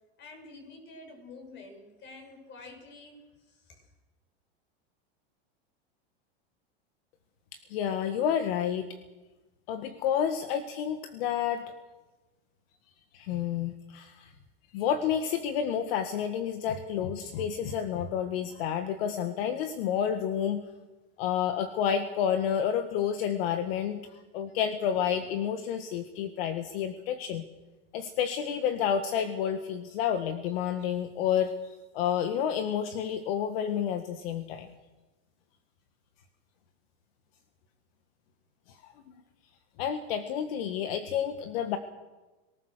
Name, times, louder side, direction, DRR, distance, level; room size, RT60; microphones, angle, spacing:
voice 1, 0.2-3.8, left 3 dB, 35° left, 4 dB, 6.6 m, -49 dB
voice 2, 7.5-8.9 9.7-11.7 13.1-14.3 14.7-20.6 21.2-24.0 24.3-27.4 27.9-34.7 38.7-38.8 39.8-41.8, left 8 dB, 65° left, 8 dB, 1.7 m, -30 dB
23.5 x 19.0 x 6.7 m, 1.2 s
supercardioid pair, 130°, 31 cm